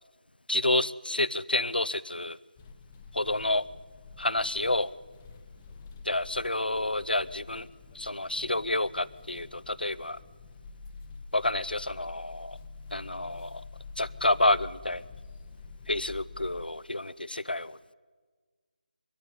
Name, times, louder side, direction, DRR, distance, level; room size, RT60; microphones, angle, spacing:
voice 1, 0.5-2.4 3.1-3.6 4.2-4.9 6.1-7.7 8.0-10.2 11.3-12.6 12.9-13.6 14.0-15.0 15.9-17.8, left 2 dB, 85° left, 18 dB, 0.8 m, -29 dB
sound 1, 2.6-16.6, left 4 dB, 15° left, 0.9 m, -47 dB
23.0 x 15.0 x 9.8 m, 1.5 s
figure-of-eight pair, 160°, 5 cm